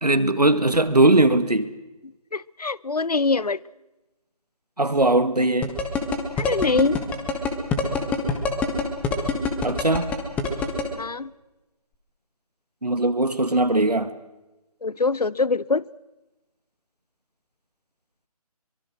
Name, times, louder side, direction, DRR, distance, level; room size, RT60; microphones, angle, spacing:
voice 1, 0.0-1.7 4.8-5.8 9.6-10.1 12.8-14.1, right 2 dB, 85° right, 1.9 m, -20 dB
voice 2, 2.3-3.6 6.4-7.0 11.0-11.3 14.8-15.8, left 4 dB, 80° left, 0.7 m, -23 dB
sound 1, 5.6-10.8, left 5 dB, 5° left, 1.5 m, -24 dB
24.0 x 22.5 x 6.3 m
figure-of-eight pair, 150°, 20 cm